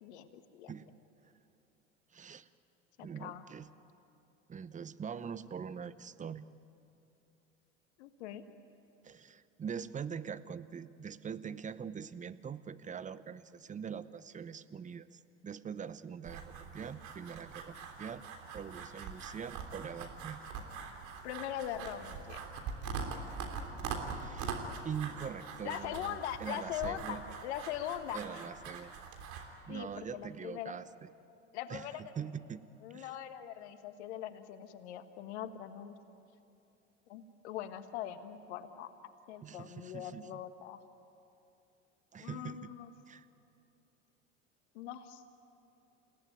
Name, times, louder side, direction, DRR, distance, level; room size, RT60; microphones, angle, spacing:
voice 1, 0.0-0.7 3.0-3.4 8.0-8.4 21.2-22.4 25.6-28.4 29.7-30.7 31.5-32.0 32.8-35.9 37.1-38.9 39.3-40.8 42.2-42.9 44.7-45.3, left 11 dB, 65° left, 9 dB, 1.7 m, -41 dB
voice 2, 2.1-2.5 3.0-3.7 4.5-6.5 9.0-18.2 18.5-20.4 24.1-27.2 28.1-29.0 29.7-31.1 31.7-32.6 32.9-33.1 39.4-40.4 42.1-42.7 43.1-43.3, right 7 dB, 20° right, 15 dB, 0.9 m, -43 dB
sound 1, 16.2-29.4, right 5 dB, 50° right, 3.6 m, -43 dB
28.5 x 17.5 x 9.4 m, 2.8 s
hypercardioid pair, 75°, 36 cm